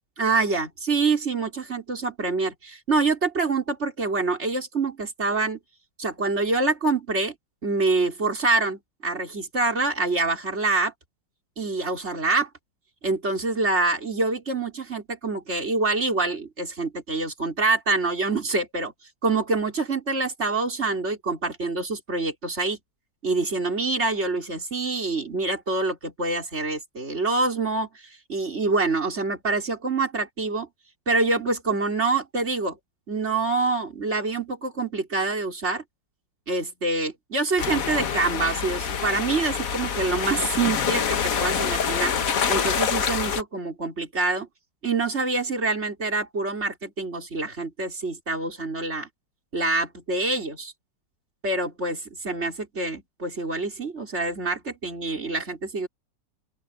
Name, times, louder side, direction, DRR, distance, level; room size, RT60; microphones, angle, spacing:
voice 1, 0.2-5.6 6.0-7.3 7.6-10.9 11.6-12.5 13.0-18.9 19.2-22.8 23.2-27.9 28.3-30.7 31.1-32.8 33.1-35.8 36.5-42.1 42.5-44.5 44.8-49.1 49.5-50.7 51.4-55.9, right 3 dB, 35° right, 5.0 m, -26 dB
sound 1, 37.6-43.4, left 7 dB, 55° left, 1.5 m, -26 dB
open air
omnidirectional pair, 2.0 m